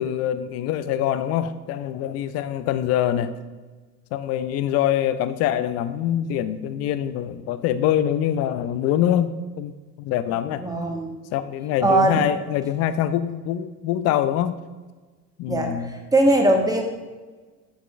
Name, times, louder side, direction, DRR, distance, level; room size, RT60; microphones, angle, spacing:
voice 1, 0.0-3.4 4.1-10.7 11.3-14.6 15.4-15.9, left 11 dB, 35° left, 12 dB, 0.4 m, -24 dB
voice 2, 10.6-11.1 11.8-12.2 15.5-15.7 16.1-16.8, right 2 dB, 5° right, 2 dB, 1.1 m, -19 dB
10.5 x 7.5 x 2.4 m, 1.3 s
figure-of-eight pair, 70°, 50 cm